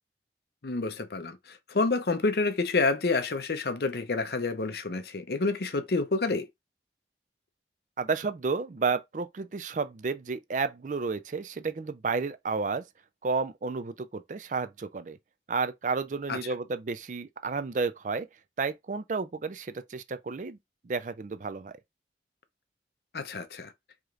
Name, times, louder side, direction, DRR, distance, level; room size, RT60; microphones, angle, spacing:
voice 1, 0.6-6.5 16.3-16.4 23.1-23.7, left 3 dB, 65° left, 0.6 m, -28 dB
voice 2, 8.0-12.8 13.2-15.2 15.5-18.3 18.6-20.6 20.8-21.7, right 4 dB, 45° right, 0.4 m, -31 dB
4.9 x 2.9 x 2.4 m
head